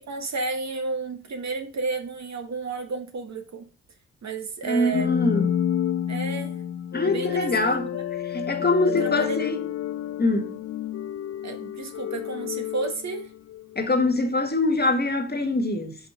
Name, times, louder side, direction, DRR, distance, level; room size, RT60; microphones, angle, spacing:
voice 1, 0.1-3.7 4.2-5.2 6.1-6.6 7.0-8.0 8.8-9.5 11.4-13.3, right 4 dB, 60° right, 1.6 m, -32 dB
voice 2, 4.6-5.5 6.9-7.8 8.3-9.6 10.2-10.6 13.7-16.0, left 2 dB, 30° left, 1.5 m, -23 dB
sound 1, 4.9-13.9, left 10 dB, 50° left, 0.5 m, -30 dB
5.6 x 5.5 x 5.7 m
cardioid pair, 70°, 31 cm